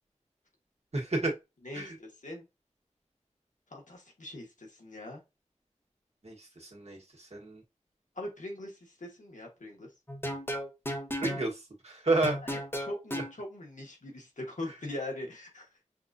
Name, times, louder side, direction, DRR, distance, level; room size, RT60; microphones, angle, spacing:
voice 1, 0.9-1.3 1.7-1.9 6.2-6.3 6.6-7.0 7.3-7.6 11.2-12.4, right 2 dB, 55° right, 1.4 m, -30 dB
voice 2, 1.6-2.4 3.7-5.2 8.2-9.9 12.4-15.8, left 1 dB, 85° left, 1.4 m, -41 dB
sound 1, 10.1-11.4 12.2-13.3, equal, 20° left, 0.9 m, -34 dB
5.8 x 2.4 x 2.6 m
wide cardioid pair, 40°, 13 cm